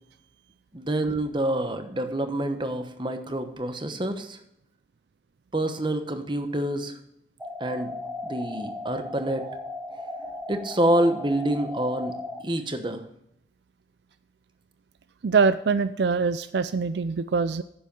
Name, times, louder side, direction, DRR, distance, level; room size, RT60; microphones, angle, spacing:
voice 1, 0.7-4.4 5.5-7.0 7.6-8.0 8.2-9.5 9.9-10.0 10.5-12.2 12.4-13.1, right 1 dB, 25° right, 7 dB, 1.0 m, -27 dB
sound 1, 7.4-12.4, left 2 dB, 10° right, 1.2 m, -36 dB
voice 2, 15.2-17.6, right 5 dB, 75° right, 13 dB, 0.4 m, -23 dB
10.0 x 7.6 x 5.3 m, 0.76 s
head